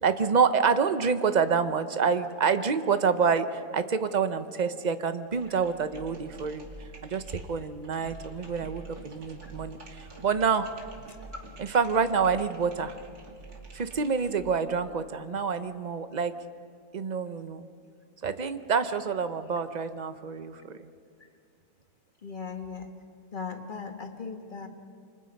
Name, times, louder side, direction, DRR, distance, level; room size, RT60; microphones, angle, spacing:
voice 1, 0.0-6.7 7.0-7.2 7.5-10.7 11.6-13.0 13.7-16.3 16.9-17.7 18.2-20.9, right 5 dB, 40° right, 11 dB, 0.7 m, -27 dB
sound 1, 5.3-14.6, right 3 dB, 75° right, 2.8 m, -47 dB
voice 2, 22.2-22.9 23.3-24.7, left 5 dB, 35° left, 5 dB, 1.4 m, -38 dB
28.0 x 25.0 x 5.3 m, 2.3 s
omnidirectional pair, 1.6 m